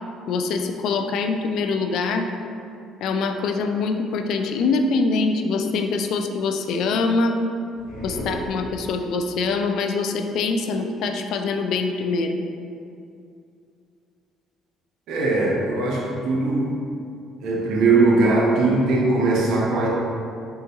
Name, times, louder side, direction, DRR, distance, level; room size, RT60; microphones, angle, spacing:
voice 1, 0.3-2.3 3.0-7.4 8.0-12.3, left 4 dB, 70° left, 5 dB, 0.3 m, -24 dB
sound 1, 7.7-9.3, equal, 85° left, 1.3 m, -35 dB
voice 2, 15.1-16.8 17.4-19.9, right 3 dB, 70° right, -3 dB, 0.8 m, -20 dB
3.9 x 3.6 x 2.9 m, 2.5 s
cardioid pair, 95°, 0 cm